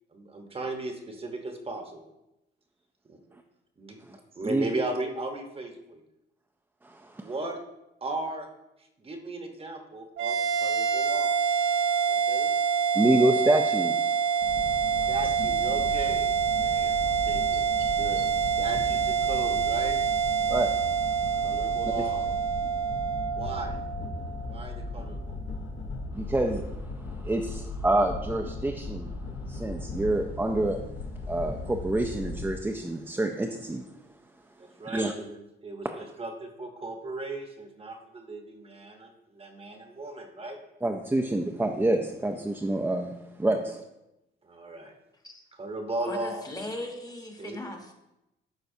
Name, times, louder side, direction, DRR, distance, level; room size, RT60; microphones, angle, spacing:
voice 1, 0.1-2.0 3.0-3.2 3.8-4.0 4.3-6.0 7.2-7.6 8.0-8.5 9.0-11.3 12.1-12.5 15.1-16.3 16.6-17.6 18.0-18.3 18.6-20.0 21.4-22.4 23.4-23.8 24.5-25.4 34.6-40.6 44.4-44.9 45.6-46.5 47.4-47.6, right 2 dB, 30° right, 4 dB, 1.0 m, -37 dB
voice 2, 6.8-7.3 12.9-14.1 20.5-20.8 21.8-21.9 26.1-26.7 27.2-29.1 29.5-30.8 31.3-33.9 34.9-35.1 40.8-43.1 43.4-43.7, right 1 dB, 10° right, 2 dB, 0.5 m, -27 dB
sound 1, 10.2-24.8, right 7 dB, 75° right, 0.8 m, -26 dB
sound 2, 14.4-32.5, left 2 dB, 60° left, 1.1 m, -38 dB
voice 3, 46.1-47.9, left 1 dB, 20° left, 3 dB, 1.1 m, -38 dB
11.5 x 4.0 x 2.7 m, 0.91 s
cardioid pair, 90°, 20 cm